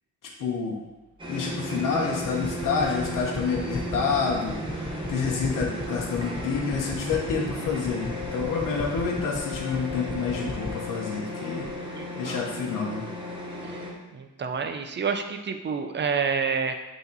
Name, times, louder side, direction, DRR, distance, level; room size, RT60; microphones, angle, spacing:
voice 1, 0.2-0.8 1.3-13.0, left 5 dB, 75° left, -2 dB, 1.1 m, -28 dB
sound 1, 1.2-13.9, left 1 dB, 15° right, 1.0 m, -35 dB
sound 2, 1.3-7.3, left 1 dB, 5° left, 1.6 m, -43 dB
sound 3, 2.2-10.8, left 3 dB, 40° left, 1.8 m, -35 dB
voice 2, 11.9-12.4 13.6-13.8 14.1-16.7, right 5 dB, 35° right, 6 dB, 0.5 m, -29 dB
8.1 x 2.9 x 4.0 m, 1.1 s
cardioid pair, 130°, 33 cm